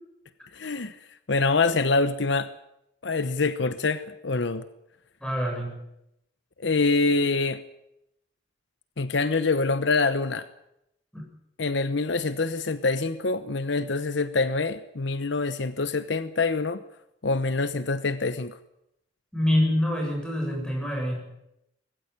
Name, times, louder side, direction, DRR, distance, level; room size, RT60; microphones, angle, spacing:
voice 1, 0.5-1.0 1.3-2.5 3.0-4.6 6.6-7.6 9.0-10.5 11.6-16.8 17.2-18.6, left 3 dB, 65° left, 12 dB, 0.9 m, -25 dB
voice 2, 5.2-5.8 11.1-11.2 19.3-21.2, left 1 dB, 5° left, 0 dB, 7.3 m, -26 dB
20.5 x 15.5 x 9.6 m, 0.83 s
head